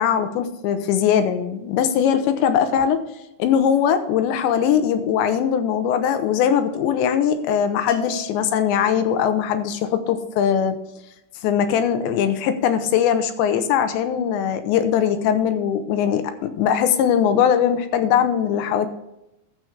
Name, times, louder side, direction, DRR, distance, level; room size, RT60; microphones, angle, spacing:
voice 1, 0.0-3.0 3.4-10.8 11.4-18.9, left 8 dB, 85° left, 9 dB, 3.0 m, -20 dB
Bell, 7.9-9.2, left 6 dB, 65° left, 1.9 m, -38 dB
12.0 x 7.8 x 4.7 m, 0.87 s
omnidirectional pair, 5.3 m